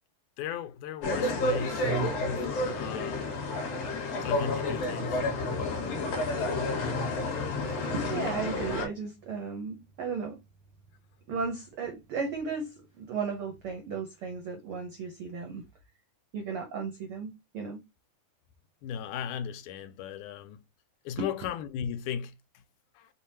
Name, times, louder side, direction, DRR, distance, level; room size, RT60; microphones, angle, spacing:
voice 1, 0.4-1.9 2.2-3.2 4.2-5.6 18.8-20.6 21.1-22.3 23.0-23.1, left 8 dB, 80° left, 2.0 m, -37 dB
sound 1, 1.0-8.9, left 2 dB, 60° left, 1.9 m, -30 dB
voice 2, 1.3-2.1 2.7-3.0 7.9-10.4 11.3-15.7 16.3-17.8 21.2-21.3, right 5 dB, 80° right, 1.2 m, -35 dB
5.6 x 2.2 x 4.1 m
omnidirectional pair, 3.6 m